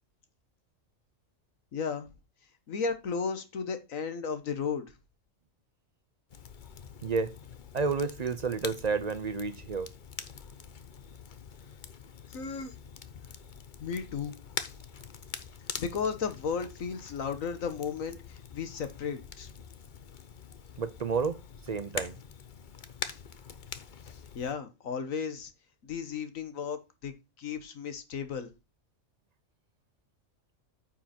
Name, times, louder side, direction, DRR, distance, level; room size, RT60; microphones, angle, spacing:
voice 1, 1.7-2.1 2.7-4.9 12.3-12.7 13.1-13.2 13.8-14.3 15.8-18.2 18.5-19.5 24.1-25.5 25.8-28.5, left 6 dB, 90° left, 1.6 m, -34 dB
Crackle, 6.3-24.5, left 6 dB, 45° left, 0.8 m, -44 dB
voice 2, 7.0-7.3 7.7-9.9 20.8-21.4 21.7-22.2, right 5 dB, 45° right, 0.5 m, -30 dB
9.3 x 5.9 x 4.4 m
omnidirectional pair, 1.3 m